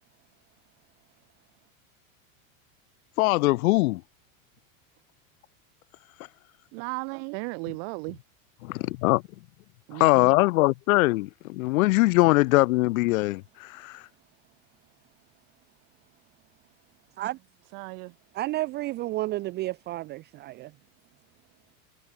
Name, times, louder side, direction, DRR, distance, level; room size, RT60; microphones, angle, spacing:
voice 1, 3.2-4.0 8.6-9.2 9.9-14.0, left 21 dB, 80° left, 0.6 m, -22 dB
voice 2, 6.7-8.2 9.9-10.3 17.7-18.2, right 40 dB or more, 60° right, 3.6 m, -35 dB
voice 3, 18.3-20.7, right 17 dB, 25° right, 0.3 m, -31 dB
supercardioid pair, 120°, 41 cm